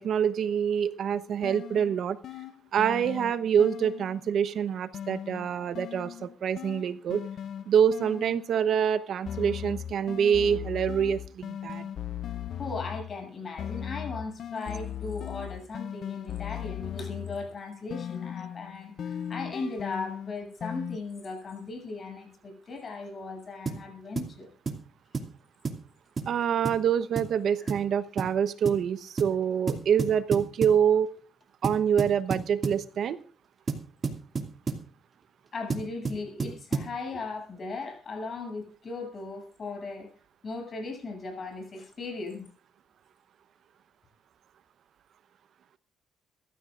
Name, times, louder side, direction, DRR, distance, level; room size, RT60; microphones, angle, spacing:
voice 1, 0.0-2.2 2.7-7.3 7.7-11.9 26.3-31.1 31.6-33.2, right 8 dB, 65° right, 13 dB, 1.0 m, -26 dB
sound 1, 1.1-4.3 4.9-8.7 9.3-13.2 13.6-17.6 17.9-21.0, left 9 dB, 65° left, 0.6 m, -38 dB
voice 2, 12.6-24.5 27.6-27.7 35.5-40.1 40.4-42.5, left 3 dB, 45° left, 3 dB, 7.8 m, -37 dB
sound 2, 23.7-23.9 24.2-24.3 24.7-24.9 25.1-25.3 25.6-25.9 26.2-26.3 26.6-26.8 27.2-27.4 27.7-27.9 28.2-28.3 28.6-28.8 29.2-29.4 29.7-30.8 31.6-32.8 33.7-34.9 35.7-36.9, right 4 dB, 40° right, 2.6 m, -31 dB
23.5 x 14.0 x 2.5 m, 0.42 s
cardioid pair, 90°, 0 cm